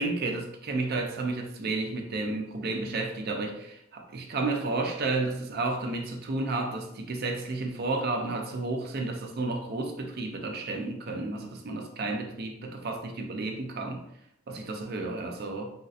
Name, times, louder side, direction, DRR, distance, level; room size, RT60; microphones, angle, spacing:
voice 1, 0.0-14.0 14.5-15.7, right 3 dB, 50° right, 3 dB, 0.5 m, -32 dB
3.1 x 2.6 x 2.4 m, 0.77 s
head